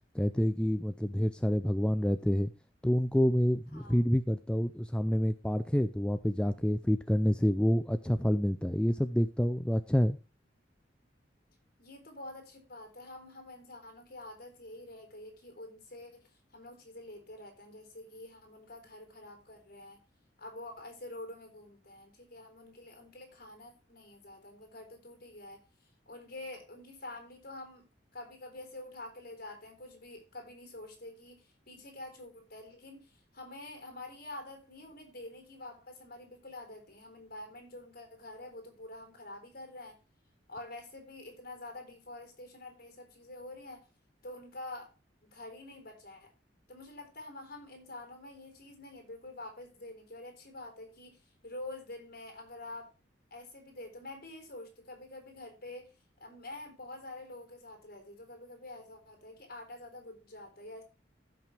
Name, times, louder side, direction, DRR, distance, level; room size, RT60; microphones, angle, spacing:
voice 1, 0.1-2.5 2.8-10.2, equal, 5° left, 0.4 m, -28 dB
voice 2, 3.7-4.1 11.8-20.0 20.4-27.9 28.1-40.0 40.5-43.8 44.2-44.9 45.2-46.3 46.7-52.9 53.3-55.9 56.2-60.8, left 2 dB, 55° left, 3.6 m, -47 dB
15.0 x 6.0 x 3.3 m
head